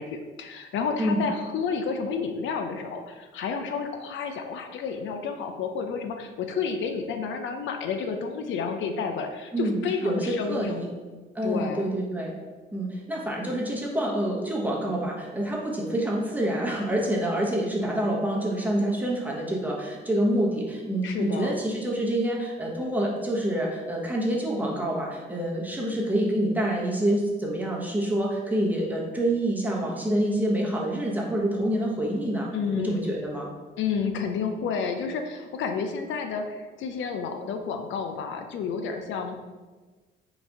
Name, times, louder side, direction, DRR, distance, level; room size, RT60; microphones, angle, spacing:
voice 1, 0.0-10.9 11.4-11.9 21.0-21.6 32.5-33.0 33.8-39.4, left 5 dB, 75° left, 5 dB, 0.5 m, -30 dB
voice 2, 9.5-10.9 11.3-12.3 12.7-32.5 32.8-33.5, right 1 dB, 10° right, -3 dB, 1.0 m, -27 dB
3.9 x 2.5 x 4.5 m, 1.3 s
cardioid pair, 90°, 20 cm